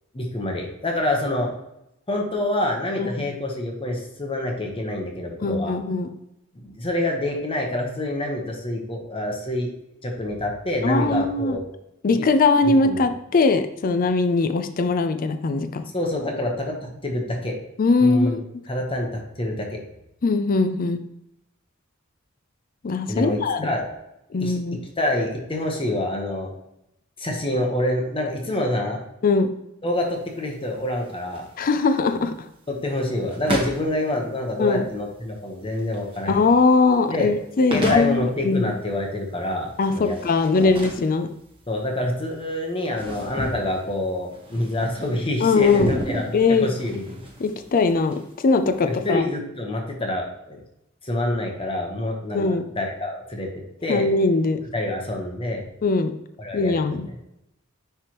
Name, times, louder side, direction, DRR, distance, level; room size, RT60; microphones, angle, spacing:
voice 1, 0.1-1.5 2.1-5.7 6.6-9.7 10.0-11.6 12.8-13.0 15.9-17.5 18.0-18.4 18.7-19.8 23.1-23.8 24.4-24.6 25.0-26.5 27.2-29.0 29.8-31.4 32.7-36.4 37.1-37.3 37.7-40.2 40.6-40.7 41.7-46.2 46.6-47.1 48.8-50.6 51.0-53.5 53.8-54.1 54.7-55.6 56.4-57.0, left 1 dB, 25° left, 1 dB, 1.0 m, -26 dB
voice 2, 5.4-6.1 10.8-11.6 12.0-15.8 17.8-18.4 20.2-21.0 22.8-23.7 24.3-24.8 29.2-29.5 31.6-32.3 34.6-34.9 36.3-38.7 39.8-41.3 45.4-45.9 46.3-46.7 47.4-49.2 52.3-52.7 53.9-54.6 55.8-56.1 56.5-57.1, left 3 dB, 45° left, 8 dB, 0.4 m, -20 dB
sound 1, 29.9-49.1, right 1 dB, 25° right, 1.4 m, -35 dB
10.0 x 3.4 x 3.0 m, 0.84 s
head